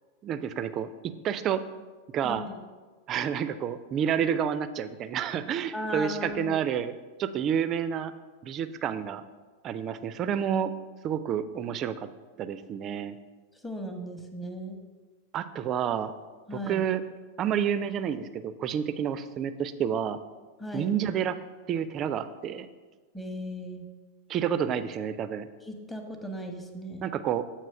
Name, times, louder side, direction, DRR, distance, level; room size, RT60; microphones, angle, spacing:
voice 1, 0.2-1.6 2.1-2.4 3.1-6.9 7.2-8.1 8.4-9.2 9.6-10.7 11.0-12.1 12.4-13.1 15.3-16.1 16.5-17.0 17.4-20.2 20.7-21.4 21.7-22.7 24.3-25.5 27.0-27.4, right 8 dB, 30° right, 12 dB, 0.4 m, -29 dB
voice 2, 2.2-2.6 5.7-6.6 13.6-14.8 16.5-16.8 20.6-20.9 23.1-23.8 25.6-27.0, equal, 10° left, 4 dB, 0.8 m, -36 dB
7.9 x 3.0 x 5.7 m, 1.4 s
figure-of-eight pair, 90°, 0 cm